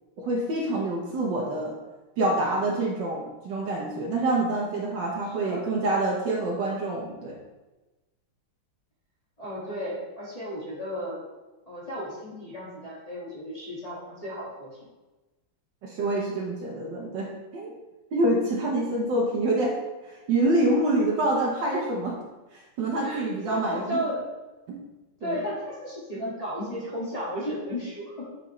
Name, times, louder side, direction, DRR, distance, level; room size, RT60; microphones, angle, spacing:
voice 1, 0.2-1.7 2.2-7.4 15.8-17.8 18.1-19.7 20.0-22.2 22.5-24.0 24.7-24.8 25.2-25.4, right 2 dB, 60° right, -2 dB, 1.5 m, -26 dB
voice 2, 5.3-5.7 9.4-11.2 11.7-14.8 22.9-24.3 25.2-28.4, equal, 20° left, -8 dB, 1.8 m, -34 dB
8.3 x 5.1 x 3.2 m, 1.1 s
omnidirectional pair, 2.4 m